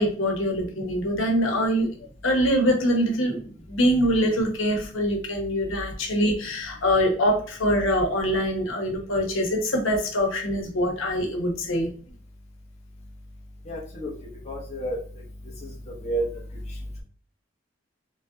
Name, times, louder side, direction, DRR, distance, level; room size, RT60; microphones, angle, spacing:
voice 1, 0.0-1.9 2.2-3.4 3.7-11.9, equal, 85° left, 1 dB, 1.0 m, -24 dB
voice 2, 13.7-14.1 14.5-15.0 15.6-16.3, right 2 dB, 35° left, -2 dB, 1.0 m, -30 dB
4.0 x 3.3 x 2.8 m, 0.42 s
head